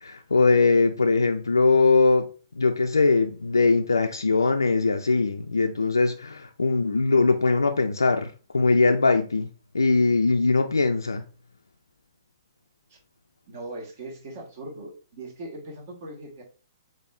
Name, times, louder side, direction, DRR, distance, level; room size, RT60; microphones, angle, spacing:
voice 1, 0.0-2.3 2.5-9.5 9.7-11.2, left 3 dB, 75° left, 0.3 m, -21 dB
voice 2, 13.5-16.4, right 2 dB, 45° right, 1.3 m, -39 dB
4.2 x 3.1 x 2.4 m
figure-of-eight pair, 115°, 2 cm